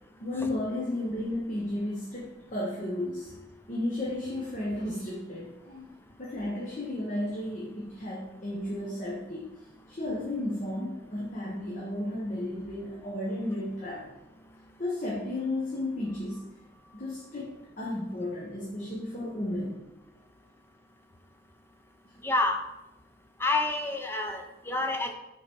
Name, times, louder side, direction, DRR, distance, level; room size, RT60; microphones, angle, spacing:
voice 1, 0.2-3.3 3.7-5.9 6.2-9.6 9.9-14.1 14.8-16.5 16.9-19.9, left 1 dB, 40° left, -3 dB, 1.0 m, -33 dB
voice 2, 22.2-22.7 23.4-25.1, left 2 dB, 10° left, 4 dB, 0.5 m, -29 dB
7.5 x 3.9 x 4.5 m, 0.91 s
head